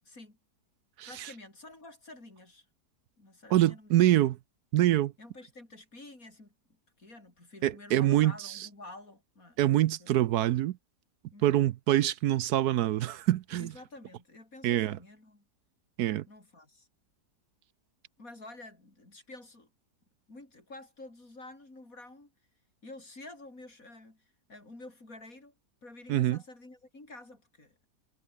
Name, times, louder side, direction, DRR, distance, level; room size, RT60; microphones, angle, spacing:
voice 1, 0.0-0.4 1.1-2.7 3.2-4.2 5.2-6.5 7.0-9.6 10.0-10.2 11.3-11.7 13.6-15.4 16.3-16.9 18.2-19.7 20.3-22.3 22.8-25.6 25.8-27.8, left 2 dB, 55° left, 6.4 m, -49 dB
voice 2, 1.0-1.3 3.5-4.4 4.7-5.1 7.6-8.7 9.6-10.8 11.4-13.7 14.6-15.0 16.0-16.2 26.1-26.4, right 13 dB, 75° right, 1.1 m, -25 dB
omnidirectional pair, 1.8 m